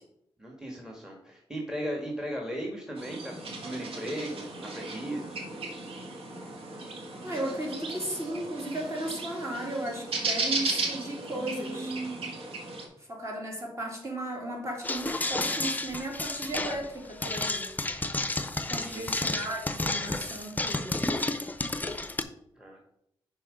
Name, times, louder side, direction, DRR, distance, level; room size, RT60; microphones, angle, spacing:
voice 1, 0.4-3.3 3.6-4.5 4.7-5.4 18.7-19.3 22.6-22.8, right 1 dB, 5° right, 0 dB, 1.7 m, -37 dB
sound 1, 3.0-12.9, right 3 dB, 75° right, 1.4 m, -35 dB
voice 2, 7.2-11.9 13.0-17.7 18.7-21.0, right 1 dB, 30° right, 0 dB, 2.5 m, -35 dB
sound 2, 14.8-22.2, left 2 dB, 20° left, 0.6 m, -31 dB
5.7 x 4.7 x 5.1 m, 0.76 s
cardioid pair, 60°, 10 cm